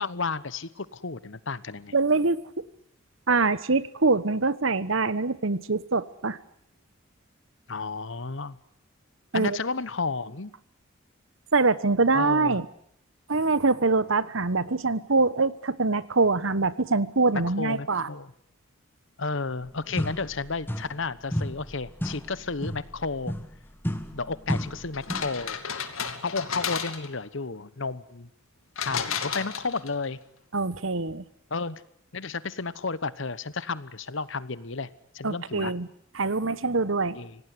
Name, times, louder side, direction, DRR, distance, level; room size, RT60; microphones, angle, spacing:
voice 1, 0.0-1.9 7.7-8.6 9.3-10.5 12.1-12.6 17.3-18.3 19.2-23.3 24.1-25.6 26.2-28.3 28.8-30.2 31.5-31.8 32.1-34.9 35.1-35.7 37.1-37.4, left 4 dB, 60° left, 17 dB, 1.1 m, -32 dB
voice 2, 1.9-2.4 3.3-6.4 9.3-9.6 11.5-12.6 13.3-18.1 30.5-31.2 35.2-35.9 36.1-37.2, right 3 dB, 65° right, 17 dB, 1.2 m, -24 dB
sound 1, 19.6-19.7 20.0-21.1 21.3-25.4, equal, 10° left, 1.8 m, -33 dB
sound 2, 24.9-27.3 28.8-30.1, left 7 dB, 75° left, 2.4 m, -33 dB
26.0 x 18.0 x 9.7 m, 0.67 s
head